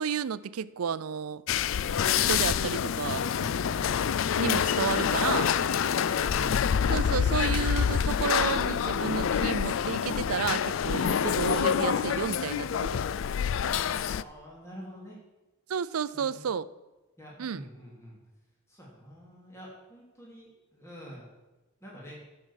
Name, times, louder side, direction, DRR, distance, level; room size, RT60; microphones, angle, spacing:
voice 1, 0.0-1.4 2.0-3.5 4.4-5.5 6.9-13.0 15.7-16.7 17.4-17.6, right 7 dB, 85° right, 17 dB, 0.5 m, -32 dB
sound 1, 1.5-14.2, left 8 dB, 65° left, 0.4 m, -27 dB
voice 2, 3.6-4.0 5.9-6.8 13.6-15.2 16.1-16.6 17.2-18.2 18.7-21.3 21.8-22.2, equal, 15° left, -4 dB, 3.1 m, -46 dB
11.5 x 7.9 x 7.3 m, 1.1 s
head